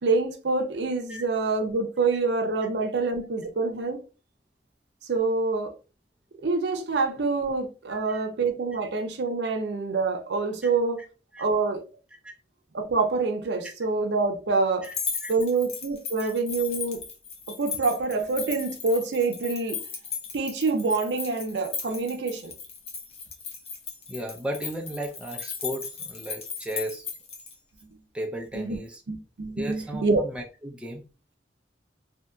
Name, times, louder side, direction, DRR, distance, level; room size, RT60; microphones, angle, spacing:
voice 1, 0.0-4.0 5.1-5.8 6.4-11.0 11.4-11.8 12.7-14.9 15.3-17.0 17.5-19.8 20.3-22.5 28.5-28.8 29.1-30.2, right 3 dB, 70° right, 0.5 m, -26 dB
voice 2, 7.9-8.3 10.6-10.7 11.3-11.5 12.2-12.3 14.8-15.0 15.2-15.3 16.2-16.3 24.1-27.1 28.1-29.0 29.6-31.0, equal, 5° right, 0.5 m, -35 dB
sound 1, 14.8-27.5, left 6 dB, 35° left, 0.6 m, -36 dB
2.7 x 2.7 x 2.2 m
head